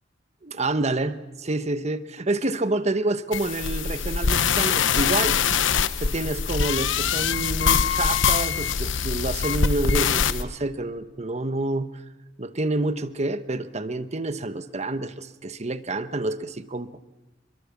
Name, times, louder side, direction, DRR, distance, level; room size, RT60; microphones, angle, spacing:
voice 1, 0.4-5.4 6.0-11.9 12.4-17.0, right 2 dB, 35° right, 12 dB, 1.1 m, -28 dB
sound 1, 3.3-10.4, left 6 dB, 85° left, 1.0 m, -23 dB
26.0 x 23.0 x 7.3 m, 1.1 s
head